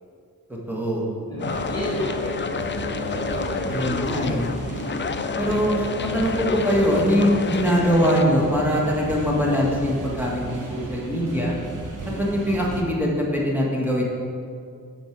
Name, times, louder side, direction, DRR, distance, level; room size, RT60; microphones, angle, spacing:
voice 1, 0.5-1.1 3.7-4.5 5.4-11.5 12.2-14.0, equal, 5° right, -4 dB, 1.6 m, -22 dB
voice 2, 1.3-2.4 2.8-4.1 4.9-5.3, right 1 dB, 10° left, -8 dB, 2.4 m, -33 dB
sound 1, 1.3-12.8, right 2 dB, 60° right, 1.3 m, -34 dB
sound 2, 1.4-8.2, left 5 dB, 35° left, 0.4 m, -29 dB
7.8 x 6.5 x 6.0 m, 2.3 s
wide cardioid pair, 130°, 36 cm